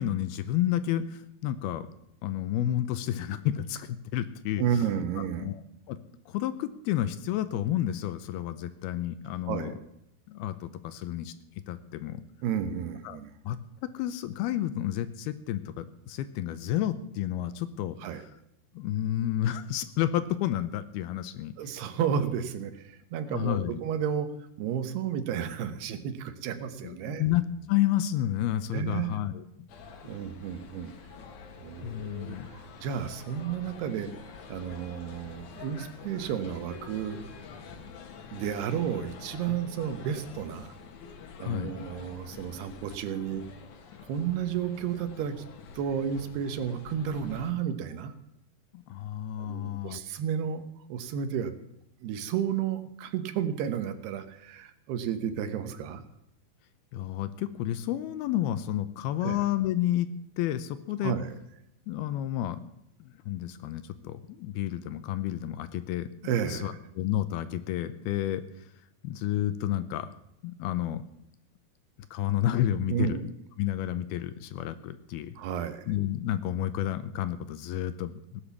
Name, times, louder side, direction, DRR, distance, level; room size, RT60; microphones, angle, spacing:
voice 1, 0.0-1.9 2.2-4.6 5.4-5.6 5.9-9.7 10.3-11.3 11.7-12.2 13.0-13.6 13.9-18.0 18.7-21.7 23.3-23.8 26.8-29.7 31.8-32.5 41.4-41.7 48.7-50.0 56.9-60.1 60.4-61.2 61.9-62.7 63.0-66.1 66.5-68.4 69.0-70.1 70.4-71.0 72.1-73.3 73.6-75.4 75.9-78.4, left 12 dB, 80° left, 12 dB, 2.5 m, -30 dB
voice 2, 4.6-5.5 9.5-9.8 12.4-13.3 18.0-18.2 21.6-24.3 24.6-27.2 28.7-29.2 30.0-30.9 31.6-32.4 32.8-34.1 34.5-37.3 38.3-40.8 41.4-43.4 44.1-45.4 45.7-48.1 49.4-50.6 50.9-51.5 52.0-56.0 59.2-59.4 61.0-61.3 66.2-66.8 72.9-73.3 75.4-75.9, right 8 dB, 75° right, 10 dB, 3.1 m, -32 dB
sound 1, 29.7-47.5, left 5 dB, 60° left, 2.5 m, -47 dB
17.0 x 10.0 x 7.2 m, 0.80 s
omnidirectional pair, 4.8 m